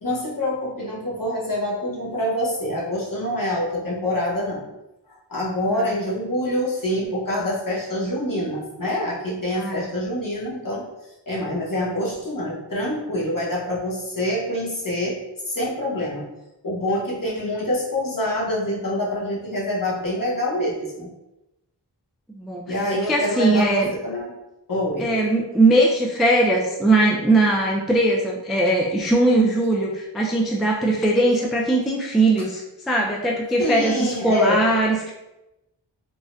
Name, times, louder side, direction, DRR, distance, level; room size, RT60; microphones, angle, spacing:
voice 1, 0.0-4.7 5.3-10.9 11.3-15.2 15.5-16.3 16.6-21.1 22.7-24.3 24.7-25.1 33.6-34.6, left 1 dB, 45° left, -5 dB, 1.1 m, -26 dB
voice 2, 22.3-22.8 23.1-23.9 25.0-35.1, right 2 dB, ahead, -1 dB, 0.3 m, -20 dB
3.6 x 2.1 x 2.6 m, 0.94 s
wide cardioid pair, 60°, 44 cm